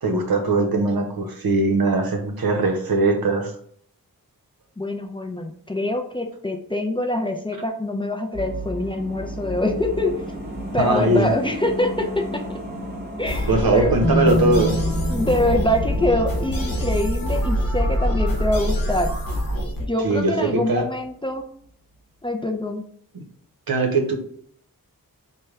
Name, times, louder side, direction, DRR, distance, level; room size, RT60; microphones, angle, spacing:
voice 1, 0.0-3.5 10.8-11.3 13.5-14.7 20.0-20.8 23.1-23.2 23.7-24.2, right 2 dB, 75° right, 4 dB, 0.7 m, -20 dB
voice 2, 4.8-10.1 10.7-12.6 13.2-13.9 15.1-19.1 19.9-21.5 22.2-22.8, left 1 dB, 15° left, 2 dB, 0.4 m, -24 dB
sound 1, 8.3-20.8 21.0-21.1, equal, 25° right, 0.9 m, -32 dB
sound 2, 13.2-19.9, equal, 70° left, 0.8 m, -26 dB
sound 3, 14.0-18.0, equal, ahead, 0.9 m, -27 dB
3.2 x 2.2 x 3.5 m, 0.62 s
wide cardioid pair, 60°, 36 cm